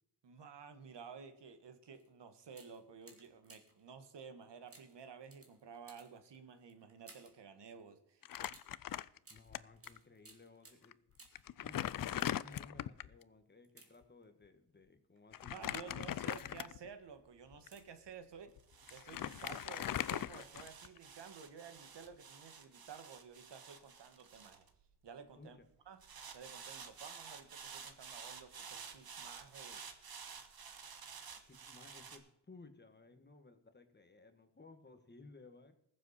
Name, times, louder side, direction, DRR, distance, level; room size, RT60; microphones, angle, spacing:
voice 1, 0.2-8.3 15.5-18.5 18.9-24.7 25.0-25.6 25.8-26.0 26.3-29.8, right 6 dB, 85° right, 9 dB, 1.6 m, -53 dB
sound 1, 1.9-2.1 2.5-3.9 4.7-7.5 8.5-11.6 12.0-12.7 13.6-14.5 15.2-15.4 15.9-16.7 17.6-18.1 18.3-18.4, right 3 dB, 35° right, 2.4 m, -62 dB
Crumpling crinkling, 8.2-9.6 9.9-10.0 10.8-10.9 11.3-13.2 15.3-16.9 17.5-17.7 18.6-18.7 18.9-21.0, left 11 dB, 55° left, 0.5 m, -40 dB
voice 2, 9.3-11.0 11.6-16.2 25.4-25.7 31.4-35.8, left 3 dB, 25° left, 8 dB, 1.4 m, -59 dB
sound 2, 15.9-25.3 26.0-32.2, right 6 dB, 60° right, 1.5 m, -52 dB
20.5 x 7.4 x 4.2 m, 0.77 s
wide cardioid pair, 135°, 41 cm